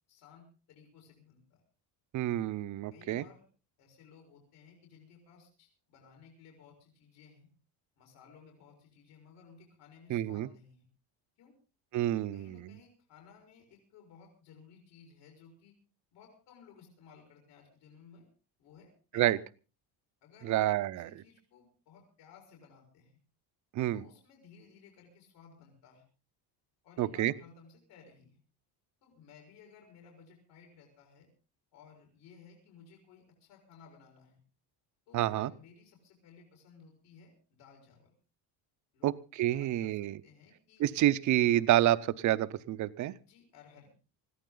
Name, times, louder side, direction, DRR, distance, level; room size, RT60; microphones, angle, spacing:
voice 1, 0.1-1.6 2.9-3.4 3.8-7.5 8.0-10.8 11.4-11.6 12.3-15.8 16.1-18.3 18.6-19.3 20.2-20.6 20.9-23.2 23.9-26.0 26.8-28.4 29.0-31.3 31.7-34.4 35.1-38.1 38.9-39.1 39.5-40.8 43.2-43.9, left 6 dB, 70° left, 1 dB, 5.2 m, -58 dB
voice 2, 2.1-3.2 10.1-10.5 11.9-12.8 19.1-19.4 20.4-21.1 23.7-24.0 27.0-27.3 35.1-35.5 39.0-40.2 40.8-43.1, right 13 dB, 40° right, 15 dB, 0.7 m, -28 dB
21.0 x 14.5 x 3.9 m, 0.34 s
cardioid pair, 175°, 43 cm